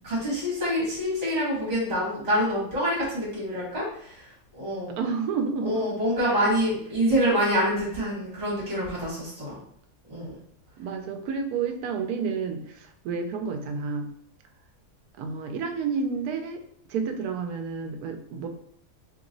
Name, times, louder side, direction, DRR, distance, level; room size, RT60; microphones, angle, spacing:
voice 1, 0.0-5.0 5.6-9.6 10.1-10.3, equal, 45° right, -7 dB, 1.8 m, -26 dB
voice 2, 5.0-5.9 10.8-14.1 15.2-16.6 16.9-18.5, right 5 dB, 85° right, 6 dB, 1.1 m, -30 dB
3.0 x 3.0 x 3.8 m, 0.64 s
omnidirectional pair, 1.6 m